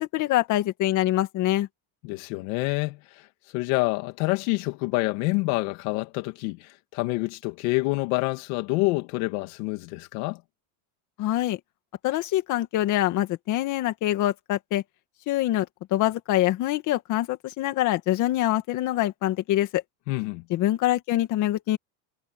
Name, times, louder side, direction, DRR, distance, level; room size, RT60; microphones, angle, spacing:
voice 1, 0.0-1.7 11.2-11.6 12.0-14.8 15.3-19.8 20.5-21.8, left 14 dB, 40° left, 2.1 m, -25 dB
voice 2, 2.0-3.3 3.5-10.4 20.1-20.4, left 23 dB, 70° left, 2.7 m, -27 dB
cardioid pair, 175°, 45 cm